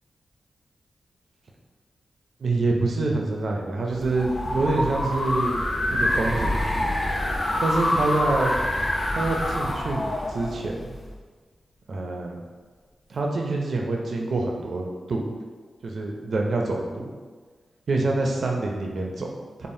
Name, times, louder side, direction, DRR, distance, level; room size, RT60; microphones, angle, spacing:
voice 1, 2.4-5.6 5.9-7.0 7.6-8.5 9.1-10.7 11.9-12.4 13.1-15.2 15.8-17.1 17.9-19.7, right 2 dB, 70° right, 0 dB, 0.4 m, -26 dB
sound 1, 3.9-11.1, left 1 dB, 40° left, 0.4 m, -26 dB
Zipper (clothing), 5.5-7.5 8.7-10.4 10.7-13.2, equal, 15° left, 0.9 m, -46 dB
3.3 x 2.0 x 2.6 m, 1.4 s
cardioid pair, 60°, 0 cm